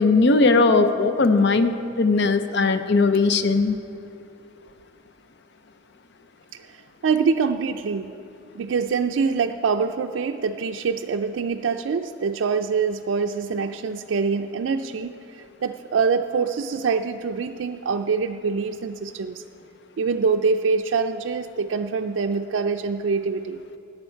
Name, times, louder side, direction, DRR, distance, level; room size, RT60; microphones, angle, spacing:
voice 1, 0.0-3.8, left 3 dB, 65° left, 10 dB, 0.6 m, -19 dB
voice 2, 7.0-8.1 8.5-19.4 20.0-23.6, right 5 dB, 85° right, 5 dB, 0.4 m, -25 dB
17.0 x 8.4 x 4.5 m, 2.8 s
head